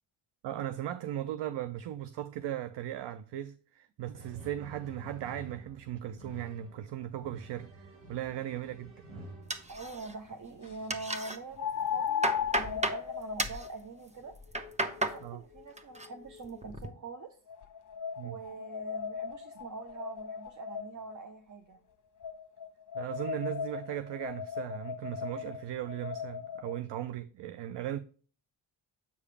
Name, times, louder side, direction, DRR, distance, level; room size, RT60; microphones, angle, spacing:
voice 1, 0.4-9.0 15.2-15.4 18.2-18.4 22.9-28.0, right 12 dB, 60° right, 0.6 m, -37 dB
sound 1, 4.2-10.2 11.4-11.5 12.3-13.0, right 1 dB, 80° right, 1.9 m, -50 dB
sound 2, 9.0-9.1 11.6-16.7 17.5-21.2 22.2-26.8, left 8 dB, 40° left, 0.9 m, -38 dB
sound 3, 9.5-10.3 10.6-11.4 11.8-13.0 13.4-13.7 14.3-15.2 15.6-16.1 16.4-16.9, right 1 dB, 15° right, 1.0 m, -33 dB
voice 2, 9.7-14.3 14.8-17.4 18.2-21.8, right 3 dB, 40° right, 1.0 m, -44 dB
8.1 x 4.9 x 3.3 m
supercardioid pair, 55°, 48 cm